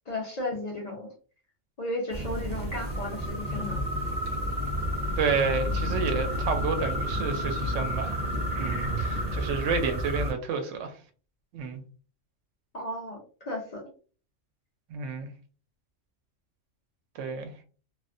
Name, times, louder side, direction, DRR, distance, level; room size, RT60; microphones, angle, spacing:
voice 1, 0.1-1.1 1.8-3.8 12.7-13.9, left 1 dB, 45° left, 0.5 m, -34 dB
sound 1, 2.1-10.3, equal, 40° right, 0.6 m, -30 dB
voice 2, 5.2-8.2 8.5-11.0 11.5-11.8 14.9-15.3 17.1-17.5, right 5 dB, 80° right, 0.9 m, -30 dB
2.4 x 2.1 x 2.5 m
omnidirectional pair, 1.3 m